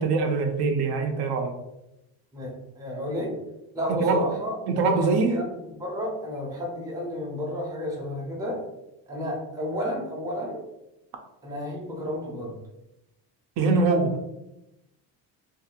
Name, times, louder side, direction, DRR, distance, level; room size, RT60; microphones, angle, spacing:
voice 1, 0.0-1.6 3.9-4.3 4.7-5.4 13.6-14.2, right 3 dB, 60° right, 4 dB, 0.5 m, -23 dB
voice 2, 2.3-3.4 3.7-8.7 9.1-10.7 11.4-12.6, left 1 dB, 10° right, -2 dB, 0.5 m, -32 dB
2.5 x 2.4 x 2.8 m, 0.91 s
cardioid pair, 135°, 43 cm